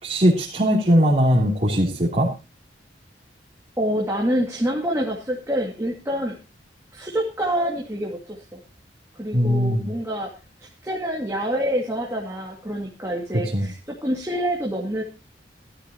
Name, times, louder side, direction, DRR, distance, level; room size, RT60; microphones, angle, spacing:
voice 1, 0.0-2.3 9.3-9.9 13.5-13.7, equal, 40° right, -5 dB, 3.1 m, -19 dB
voice 2, 3.8-6.4 6.9-8.6 9.2-10.3 10.6-15.0, equal, 15° right, -1 dB, 2.2 m, -26 dB
16.5 x 12.5 x 2.9 m, 0.30 s
head